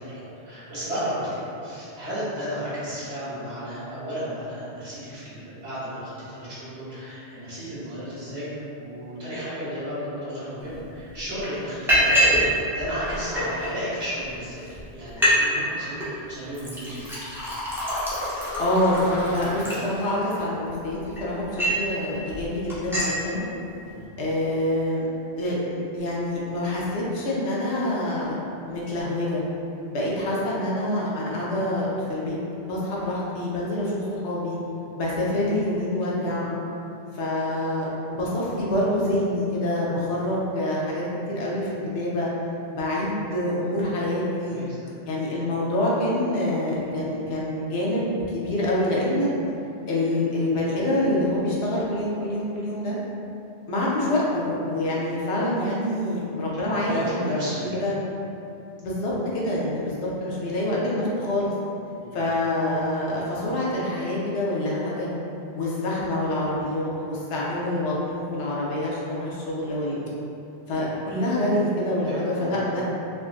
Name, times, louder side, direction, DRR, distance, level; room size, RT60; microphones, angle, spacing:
voice 1, 0.0-17.0 23.8-24.0 36.2-36.3 44.4-44.8 54.7-54.8 56.5-57.7 62.0-62.2 71.8-72.6, equal, 75° right, -10 dB, 1.4 m, -33 dB
Liquid, 10.7-10.8 11.1-11.4 11.9-12.5 12.8-13.7 14.3-14.4 14.7-14.8 15.1-15.4 15.6-16.1 16.5-20.4 20.9-21.9 22.3-22.4 22.7-23.2, equal, 5° right, 0.5 m, -25 dB
voice 2, 18.6-23.4 24.2-25.1 25.3-29.4 29.9-32.3 32.6-34.6 35.0-36.5 37.1-41.0 41.3-42.3 42.7-44.6 45.1-49.3 49.9-53.0 53.7-57.5 57.8-57.9 58.8-61.5 62.1-65.1 65.5-70.0 70.7-72.8, left 1 dB, 80° left, -6 dB, 1.0 m, -26 dB
3.8 x 2.4 x 2.4 m, 2.8 s
omnidirectional pair, 1.2 m